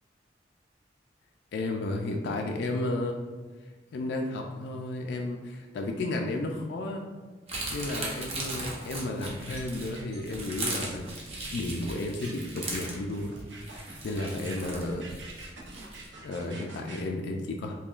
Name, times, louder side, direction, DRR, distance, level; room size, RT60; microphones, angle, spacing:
voice 1, 1.5-3.2 3.9-7.1 7.7-11.1 11.4-13.3 13.7-15.1 16.2-17.7, left 2 dB, 65° left, 2 dB, 0.3 m, -33 dB
sound 1, 7.5-16.1, right 2 dB, 35° right, 0.8 m, -38 dB
sound 2, 9.6-17.0, right 2 dB, 85° right, 0.7 m, -46 dB
5.4 x 2.2 x 2.4 m, 1.4 s
head